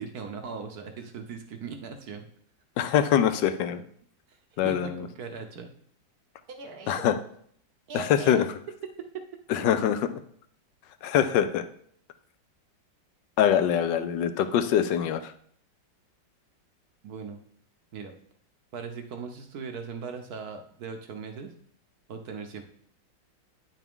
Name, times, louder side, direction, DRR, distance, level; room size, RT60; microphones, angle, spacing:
voice 1, 0.0-2.3 4.3-4.4 4.6-5.7 6.5-7.0 7.9-8.4 9.0-9.3 17.0-17.4 17.9-18.1 18.7-21.5 22.1-22.6, right 5 dB, 65° right, 5 dB, 1.1 m, -39 dB
voice 2, 2.8-3.8 4.6-5.1 6.9-7.1 7.9-8.4 9.5-10.0 11.0-11.6 13.4-15.3, left 9 dB, 75° left, 10 dB, 1.2 m, -24 dB
9.5 x 5.9 x 3.6 m, 0.62 s
omnidirectional pair, 2.0 m